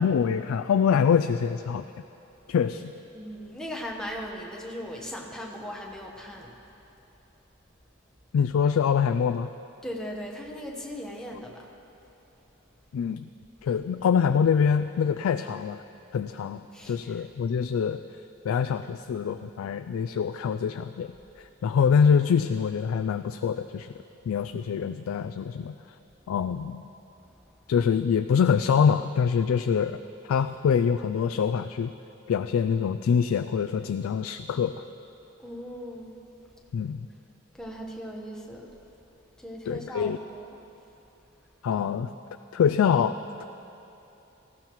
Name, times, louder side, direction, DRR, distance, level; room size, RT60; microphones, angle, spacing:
voice 1, 0.0-1.8 2.5-2.9 8.3-9.5 12.9-13.3 13.6-15.8 16.1-18.0 18.4-21.1 21.4-23.9 24.3-25.7 26.3-26.8 27.7-30.0 30.2-31.9 32.3-34.8 36.7-37.1 39.7-40.2 41.6-42.1 42.5-43.4, left 7 dB, 90° left, 10 dB, 0.3 m, -25 dB
voice 2, 3.1-6.5 9.8-11.7 16.7-17.2 35.4-36.1 37.5-38.7 39.4-40.5, equal, 5° left, -1 dB, 1.1 m, -38 dB
18.0 x 14.5 x 3.0 m, 2.9 s
head